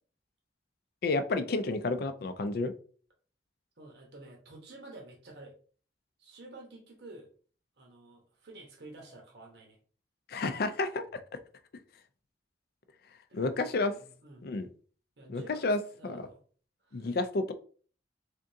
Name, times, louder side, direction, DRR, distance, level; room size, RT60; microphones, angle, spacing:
voice 1, 1.0-2.7 10.3-11.0 13.3-13.9 14.4-14.7 15.3-16.2 16.9-17.5, left 3 dB, 60° left, 9 dB, 0.4 m, -30 dB
voice 2, 3.8-5.5 6.2-7.3 7.8-9.8 13.3-14.5 15.2-16.4 16.8-17.1, right 2 dB, 70° right, 0 dB, 1.0 m, -50 dB
3.7 x 3.5 x 2.7 m, 0.42 s
head